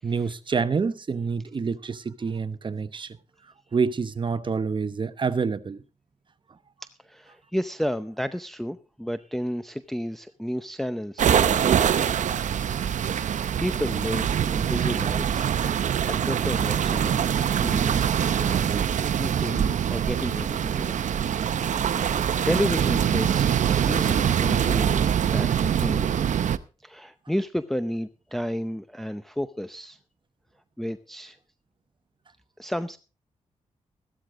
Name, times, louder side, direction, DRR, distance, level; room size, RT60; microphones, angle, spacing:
voice 1, 0.0-3.2 3.7-5.8 6.5-6.6, right 5 dB, 40° right, 0.9 m, -27 dB
voice 2, 6.8-12.0 12.3-12.6 13.6-15.6 16.1-18.1 18.4-20.9 21.7-23.5 23.9-26.1 26.8-30.0 30.8-31.4 32.6-33.0, equal, ahead, 0.7 m, -32 dB
sound 1, 11.2-26.6, right 9 dB, 75° right, 0.7 m, -24 dB
14.5 x 13.0 x 3.7 m
cardioid pair, 85°, 13 cm